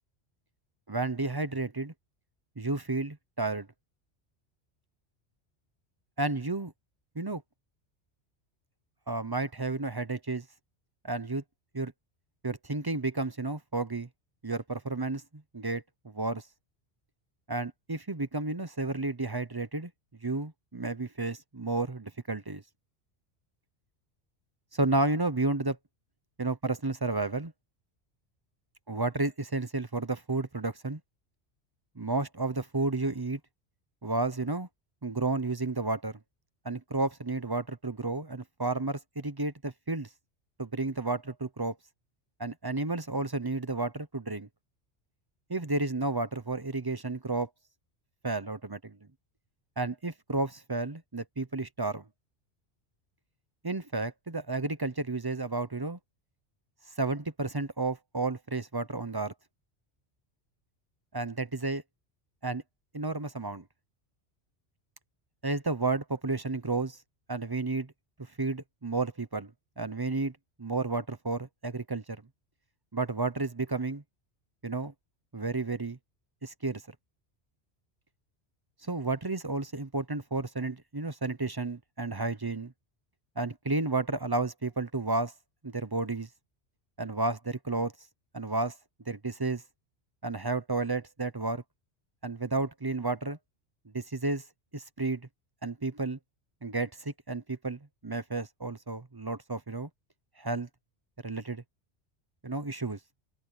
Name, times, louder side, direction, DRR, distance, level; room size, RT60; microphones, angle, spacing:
voice 1, 0.9-1.9 2.6-3.7 6.2-6.7 7.1-7.4 9.1-10.4 11.0-11.4 11.7-11.9 12.4-14.1 14.4-16.4 17.5-19.9 20.2-22.6 24.7-25.8 26.4-27.5 28.9-31.0 32.0-33.4 34.0-34.7 35.0-36.2 36.6-40.1 40.6-41.8 42.4-44.5 45.5-47.5 48.2-49.0 49.8-52.0 53.6-56.0 57.0-59.3 61.1-61.8 62.4-62.6 62.9-63.6 65.4-67.0 67.3-67.9 68.4-69.5 69.8-70.3 70.6-72.2 72.9-74.0 74.6-74.9 75.3-76.0 76.4-76.8 78.8-82.7 83.4-85.3 85.6-86.3 87.0-87.9 88.3-88.8 89.1-89.6 90.2-91.6 92.2-93.4 93.9-94.4 94.7-95.3 95.6-96.2 96.6-99.9 100.4-100.7 101.2-101.6 102.4-103.0, right 3 dB, 25° right, 0.8 m, -32 dB
omnidirectional pair, 1.1 m